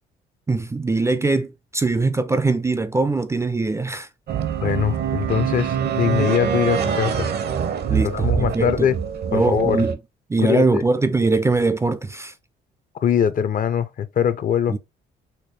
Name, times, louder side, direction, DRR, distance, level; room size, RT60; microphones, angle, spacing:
voice 1, 0.5-4.1 7.9-8.9 9.3-10.0 10.3-12.3 14.7-14.8, right 3 dB, 15° right, 0.3 m, -22 dB
sound 1, 4.3-9.9, right 7 dB, 60° right, 0.7 m, -24 dB
voice 2, 4.6-7.3 8.0-9.0 9.3-9.8 10.4-10.8 12.9-14.8, left 8 dB, 45° left, 0.5 m, -22 dB
4.3 x 2.2 x 3.2 m
supercardioid pair, 75°, 19 cm